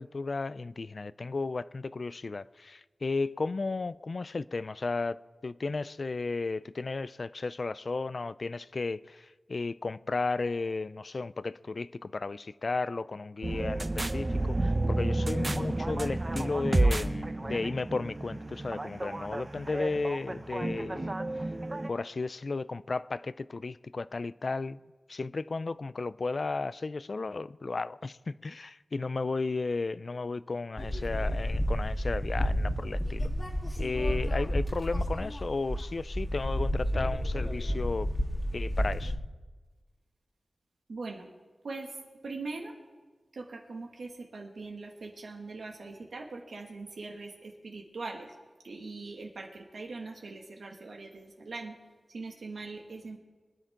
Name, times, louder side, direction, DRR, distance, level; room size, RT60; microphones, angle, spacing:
voice 1, 0.0-21.5 21.9-24.8 25.1-33.3 33.8-38.1 38.5-39.1, left 3 dB, 55° left, 0.4 m, -34 dB
sound 1, 13.4-21.9, right 2 dB, 30° right, 0.7 m, -31 dB
sound 2, 30.8-39.2, equal, 20° left, 1.7 m, -31 dB
voice 2, 40.9-41.3 41.6-42.0 42.2-42.8 43.3-48.3 48.6-51.8 52.1-53.2, right 3 dB, 90° right, 2.1 m, -41 dB
24.5 x 10.0 x 3.8 m
wide cardioid pair, 80°, 0 cm